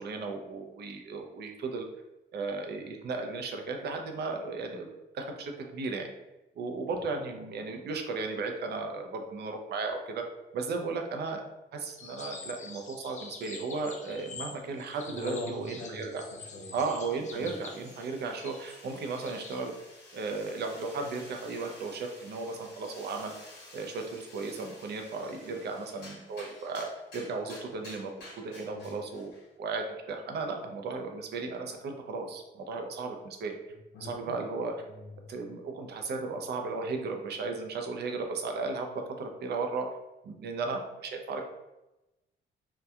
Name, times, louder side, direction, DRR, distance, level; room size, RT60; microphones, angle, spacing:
voice 1, 0.0-1.9 2.3-4.9 5.1-6.1 6.6-10.2 10.5-11.4 11.7-16.2 16.7-19.7 20.1-29.3 29.6-33.5 34.0-34.7 35.3-38.9 39.2-39.9 40.2-41.4, right 4 dB, 55° right, 3 dB, 0.5 m, -35 dB
sound 1, 12.0-19.6, left 4 dB, 35° left, 0.4 m, -46 dB
voice 2, 15.0-16.0 16.3-16.8 17.3-17.5 28.7-28.9 33.7-34.4 34.8-35.2, left 2 dB, 85° left, -3 dB, 0.7 m, -41 dB
sound 2, 16.4-29.5, left 2 dB, 60° left, 1.1 m, -52 dB
2.7 x 2.2 x 2.3 m, 0.98 s
cardioid pair, 90°, 20 cm